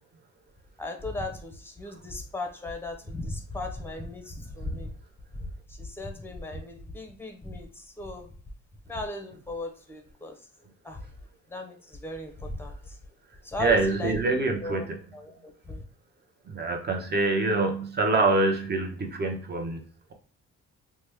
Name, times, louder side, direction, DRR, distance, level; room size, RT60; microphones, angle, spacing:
voice 1, 0.8-4.9 5.4-8.3 8.8-10.4 10.8-11.0 11.5-13.0 13.4-14.2 14.6-14.9 15.1-15.8, left 2 dB, 5° left, 4 dB, 0.7 m, -37 dB
voice 2, 13.6-15.0 16.5-19.8, right 3 dB, 35° right, 3 dB, 0.8 m, -25 dB
3.0 x 2.2 x 3.4 m, 0.43 s
cardioid pair, 90°, 30 cm